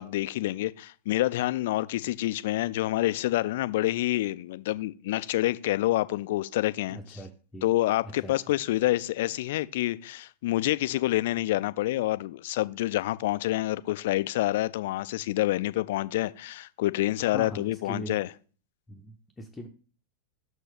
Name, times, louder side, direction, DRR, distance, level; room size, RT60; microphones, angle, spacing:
voice 1, 0.0-7.0 7.6-18.3, left 16 dB, 55° left, 0.3 m, -27 dB
voice 2, 6.9-7.6 8.0-8.3 17.2-18.2 18.9-19.7, equal, 10° left, 0.7 m, -40 dB
6.4 x 4.5 x 4.9 m
figure-of-eight pair, 90°, 0 cm